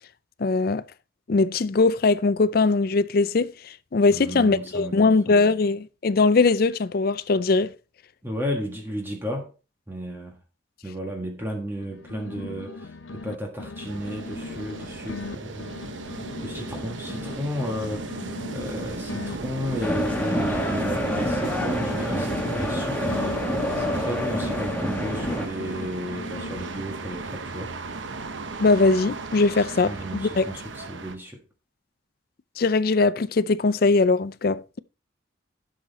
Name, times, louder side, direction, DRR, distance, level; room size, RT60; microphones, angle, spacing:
voice 1, 0.4-0.8 1.3-7.7 28.6-30.5 32.6-34.8, left 3 dB, 50° left, 0.4 m, -21 dB
voice 2, 4.1-5.4 8.2-9.5 9.9-10.4 10.8-15.7 16.4-23.2 23.8-27.7 29.8-31.4, equal, 10° right, 1.6 m, -33 dB
sound 1, 11.7-13.3 13.6-17.3 17.6-21.3 21.6-25.3 25.6-27.0, left 3 dB, 80° left, 0.8 m, -39 dB
sound 2, 13.8-31.2, right 3 dB, 75° right, 0.9 m, -35 dB
sound 3, 19.8-25.5, left 1 dB, 10° left, 1.3 m, -27 dB
11.5 x 6.4 x 4.1 m
head